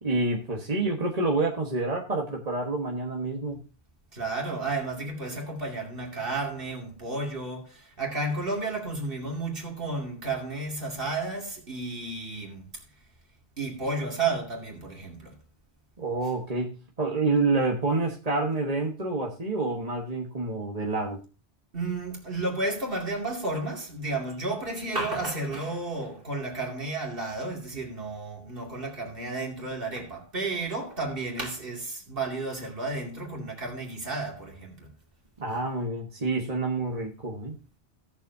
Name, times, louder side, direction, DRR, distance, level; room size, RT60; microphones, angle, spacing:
voice 1, 0.0-3.6 16.0-21.2 35.4-37.6, right 3 dB, 35° right, 1.5 m, -28 dB
voice 2, 4.1-7.7 8.0-12.6 13.6-15.3 21.7-34.9, right 3 dB, 55° right, 2.8 m, -32 dB
17.5 x 7.1 x 2.7 m
omnidirectional pair, 1.1 m